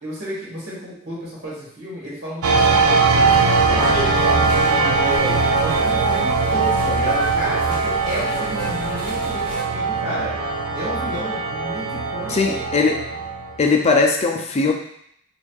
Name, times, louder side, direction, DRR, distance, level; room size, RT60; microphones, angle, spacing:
voice 1, 0.0-3.2 3.6-10.3 10.7-12.5, equal, 55° right, -6 dB, 1.4 m, -31 dB
sound 1, 2.4-13.6, right 4 dB, 80° right, 0.4 m, -20 dB
sound 2, 2.5-9.6, equal, 5° left, 1.2 m, -32 dB
voice 2, 12.3-13.1 13.6-14.7, left 4 dB, 30° left, 2 dB, 0.4 m, -19 dB
4.2 x 2.5 x 2.3 m, 0.70 s
head